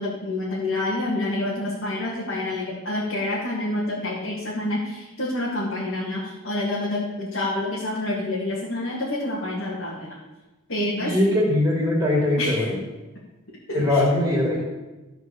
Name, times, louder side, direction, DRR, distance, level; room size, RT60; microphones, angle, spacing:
voice 1, 0.0-10.2 10.7-11.1 12.4-12.7 13.7-14.3, left 1 dB, 55° left, -5 dB, 1.9 m, -28 dB
voice 2, 11.0-12.8 13.7-14.6, left 1 dB, 15° right, -4 dB, 2.6 m, -21 dB
13.5 x 4.6 x 6.9 m, 1.1 s
head